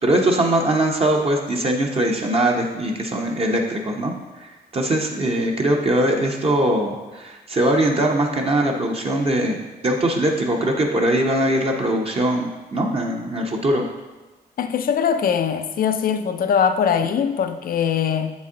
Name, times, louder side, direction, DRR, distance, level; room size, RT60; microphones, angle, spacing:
voice 1, 0.0-4.1 4.4-13.8, right 1 dB, 35° right, 0 dB, 0.8 m, -21 dB
voice 2, 14.6-18.3, left 7 dB, 60° left, 9 dB, 0.5 m, -21 dB
7.5 x 4.1 x 3.7 m, 1.2 s
cardioid pair, 95°, 17 cm